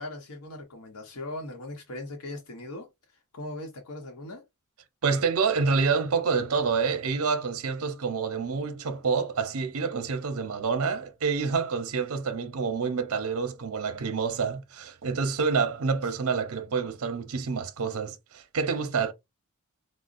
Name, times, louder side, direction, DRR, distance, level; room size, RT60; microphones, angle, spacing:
voice 1, 0.0-2.9 3.1-4.4 16.0-16.1, left 1 dB, 85° left, 0.8 m, -39 dB
voice 2, 5.0-19.1, right 5 dB, 65° right, 0.6 m, -27 dB
4.9 x 2.0 x 2.5 m
head